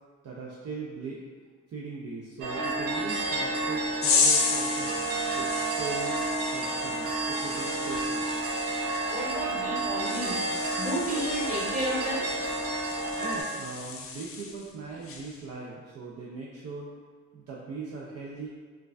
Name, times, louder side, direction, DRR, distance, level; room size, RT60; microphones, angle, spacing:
voice 1, 0.2-1.2 1.7-5.0 5.3-6.2 6.5-8.3 13.2-16.9 17.3-18.5, right 4 dB, 55° right, -4 dB, 0.5 m, -39 dB
sound 1, 2.4-13.4, right 2 dB, 85° right, 0.8 m, -31 dB
sound 2, 4.0-14.7 15.0-15.4, left 5 dB, 45° left, 0.5 m, -33 dB
voice 2, 9.1-10.5 10.8-12.3, equal, 25° right, -6 dB, 1.2 m, -32 dB
4.5 x 2.3 x 2.4 m, 1.6 s
cardioid pair, 90°, 30 cm